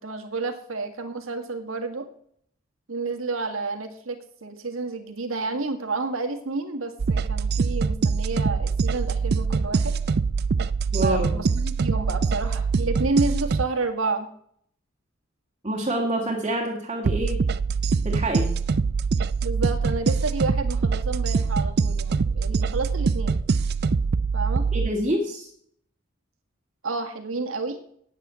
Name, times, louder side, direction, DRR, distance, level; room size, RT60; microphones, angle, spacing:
voice 1, 0.0-2.1 2.9-9.9 11.0-14.3 19.4-23.4 24.3-24.7 26.8-27.8, right 3 dB, 75° right, 6 dB, 1.8 m, -30 dB
sound 1, 7.0-13.6 17.0-24.9, right 4 dB, 50° right, 0.4 m, -24 dB
voice 2, 10.9-11.3 15.6-17.4 18.0-18.5 24.7-25.5, right 1 dB, 25° right, -3 dB, 1.8 m, -27 dB
9.1 x 8.4 x 8.1 m, 0.65 s
head